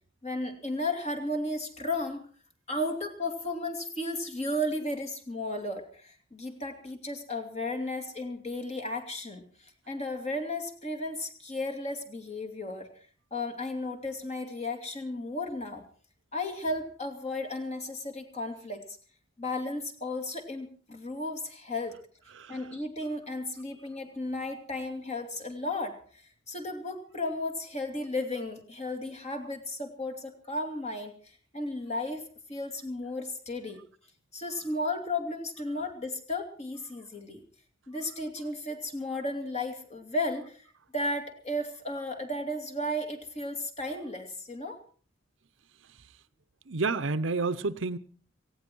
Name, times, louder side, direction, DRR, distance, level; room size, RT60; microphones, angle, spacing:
voice 1, 0.2-2.3 2.7-12.9 13.3-15.8 16.3-19.0 19.4-22.0 22.5-31.1 31.5-32.2 32.5-33.8 34.3-37.4 37.9-40.7 40.9-44.8, left 1 dB, 35° left, 2.6 m, -34 dB
voice 2, 46.7-48.0, right 3 dB, 70° right, 0.8 m, -29 dB
18.0 x 16.0 x 4.6 m
head